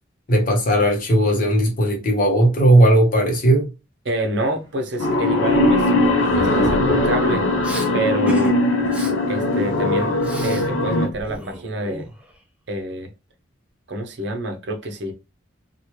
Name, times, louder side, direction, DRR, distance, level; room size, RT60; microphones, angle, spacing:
voice 1, 0.3-3.7, right 1 dB, 45° left, 0.9 m, -16 dB
voice 2, 4.1-5.9 6.3-7.5 7.9-8.6 9.3-12.0 12.7-13.1 13.9-15.1, right 1 dB, 60° right, 0.7 m, -27 dB
sound 1, 4.5-8.1, right 1 dB, 15° left, 1.1 m, -32 dB
sound 2, 5.0-11.1, left 2 dB, 85° left, 0.7 m, -20 dB
Respiratory sounds, 7.6-7.9 8.3-8.5 8.8-9.1 9.5-10.7 10.9-12.4, right 1 dB, 5° right, 0.4 m, -33 dB
2.9 x 2.3 x 3.0 m
head